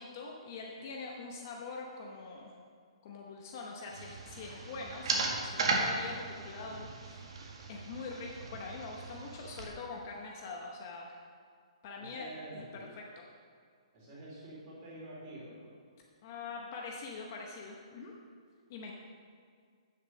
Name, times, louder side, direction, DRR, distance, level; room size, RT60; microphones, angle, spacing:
voice 1, 0.0-2.5 3.0-7.2 7.7-11.2 11.8-12.6 13.0-13.2 16.2-18.1 18.7-18.9, left 4 dB, 25° left, 0 dB, 0.9 m, -44 dB
sound 1, 3.9-9.7, right 3 dB, 50° right, 1.8 m, -36 dB
voice 2, 12.0-12.9 13.9-15.8, right 1 dB, 20° right, -4 dB, 3.1 m, -47 dB
9.5 x 8.2 x 6.4 m, 2.1 s
hypercardioid pair, 180°, 3 cm